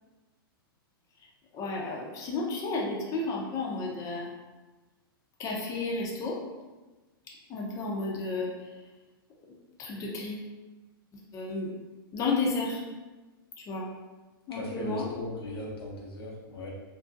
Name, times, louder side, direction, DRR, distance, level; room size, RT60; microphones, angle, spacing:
voice 1, 1.5-4.3 5.4-6.4 7.5-8.5 9.8-10.4 11.3-11.7 12.1-12.8 13.7-13.9 14.5-15.1, left 3 dB, 25° left, -3 dB, 0.5 m, -32 dB
voice 2, 14.5-16.7, left 1 dB, 85° left, -3 dB, 0.7 m, -38 dB
2.5 x 2.2 x 2.4 m, 1.2 s
hypercardioid pair, 115°, 12 cm